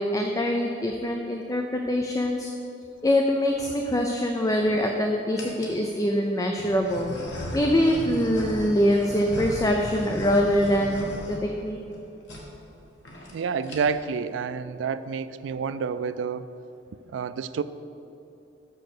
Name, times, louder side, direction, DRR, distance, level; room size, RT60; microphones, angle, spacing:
voice 1, 0.0-2.5 3.0-7.1 7.5-11.8, equal, 20° left, 2 dB, 0.4 m, -24 dB
sound 1, 3.2-3.7 4.4-4.9 5.4-5.8 6.5-12.0 12.3-12.4 12.7-12.8 13.0-13.3 13.6-14.1, left 1 dB, 85° left, 1.5 m, -37 dB
voice 2, 13.3-16.5 17.1-17.6, right 5 dB, 85° right, 13 dB, 0.3 m, -29 dB
6.4 x 6.2 x 6.6 m, 2.8 s
head